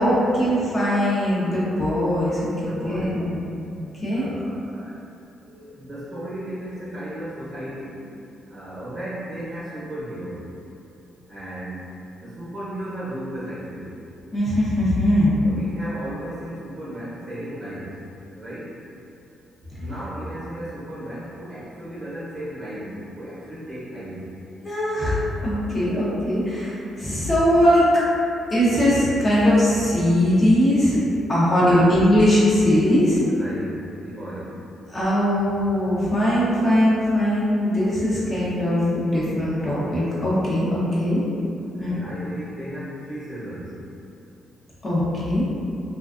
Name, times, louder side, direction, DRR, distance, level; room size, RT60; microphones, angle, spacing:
voice 1, 0.0-3.4 4.0-4.3 14.3-15.3 24.6-27.9 28.5-31.0 31.3-33.2 34.9-41.2 41.8-41.9 44.8-45.5, equal, 30° left, -9 dB, 0.7 m, -20 dB
voice 2, 2.6-3.3 4.1-5.0 5.4-8.1 8.5-10.4 11.3-11.8 12.1-14.0 15.4-18.0 18.4-18.8 19.8-24.4 31.5-32.0 33.3-34.6 41.8-43.8, right 1 dB, 40° right, -10 dB, 0.7 m, -35 dB
2.3 x 2.2 x 2.4 m, 2.7 s
cardioid pair, 90°, 0 cm